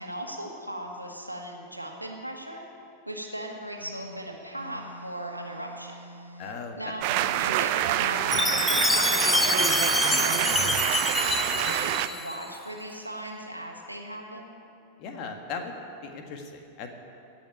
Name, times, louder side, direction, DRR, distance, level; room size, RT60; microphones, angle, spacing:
voice 1, 0.0-2.6 3.1-6.0 6.8-14.5, right 1 dB, 90° right, 0 dB, 1.8 m, -38 dB
sound 1, 3.8-6.6 7.0-9.8, equal, 90° left, 0.8 m, -45 dB
voice 2, 6.4-6.9 15.0-15.7 16.0-16.9, left 5 dB, 40° left, 4 dB, 1.7 m, -37 dB
sound 2, 7.0-12.1, right 13 dB, 45° right, 0.6 m, -26 dB
Chime, 8.3-12.4, left 3 dB, 10° left, 0.5 m, -26 dB
17.0 x 6.2 x 9.5 m, 2.6 s
figure-of-eight pair, 90°, 0 cm